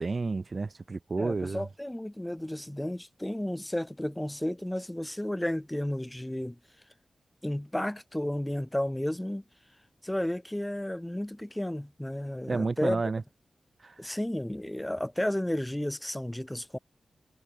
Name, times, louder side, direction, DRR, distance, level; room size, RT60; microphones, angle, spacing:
voice 1, 0.0-1.7 12.5-13.2 13.8-13.9, right 3 dB, 40° right, 0.7 m, -30 dB
voice 2, 1.2-6.6 7.4-9.4 10.0-13.0 14.0-16.8, left 1 dB, 10° left, 1.0 m, -32 dB
wide cardioid pair, 115°, 0 cm